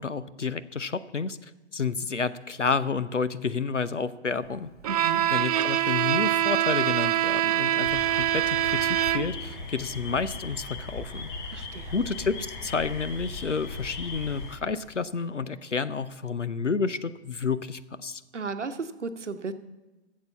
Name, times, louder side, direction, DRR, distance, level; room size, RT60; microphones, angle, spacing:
voice 1, 0.0-4.7 5.3-11.6 11.9-18.2, left 5 dB, 90° left, 15 dB, 0.7 m, -30 dB
Bowed string instrument, 4.8-9.5, right 12 dB, 35° right, 0.5 m, -24 dB
voice 2, 4.9-5.2 11.5-11.9 18.3-19.5, right 4 dB, 80° right, 9 dB, 1.0 m, -34 dB
sound 1, 7.8-14.6, left 3 dB, 40° left, 1.8 m, -38 dB
13.0 x 7.5 x 7.0 m, 1.1 s
figure-of-eight pair, 115°, 35 cm